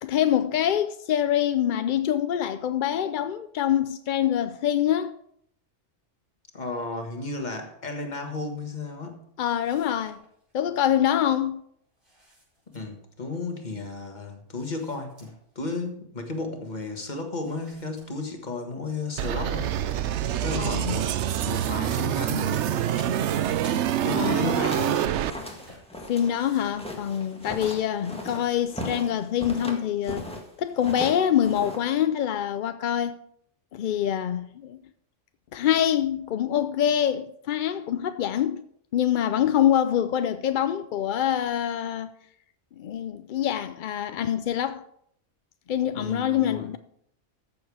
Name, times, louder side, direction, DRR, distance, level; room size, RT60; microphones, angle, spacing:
voice 1, 0.0-5.1 9.4-10.2 10.5-11.6 20.6-21.0 24.1-24.5 26.1-30.3 30.6-33.2 33.7-34.8 35.5-38.6 38.9-42.1 42.8-44.8 45.7-46.8, left 10 dB, 60° left, 0.5 m, -25 dB
voice 2, 6.5-9.3 12.7-19.7 20.4-21.2 21.5-22.7 24.0-25.1 45.9-46.7, left 3 dB, 40° left, 1.7 m, -34 dB
sound 1, 9.4-10.5 12.0-13.1 14.5-15.6 15.9-16.0 17.4-18.6 19.1-19.2 19.5-20.3 20.6-28.7, equal, 45° right, 5.1 m, -53 dB
sound 2, 19.2-25.3, right 10 dB, 75° right, 0.9 m, -26 dB
sound 3, 24.2-30.5 30.8-32.0, left 1 dB, 5° left, 1.7 m, -37 dB
13.5 x 7.0 x 4.8 m
omnidirectional pair, 1.2 m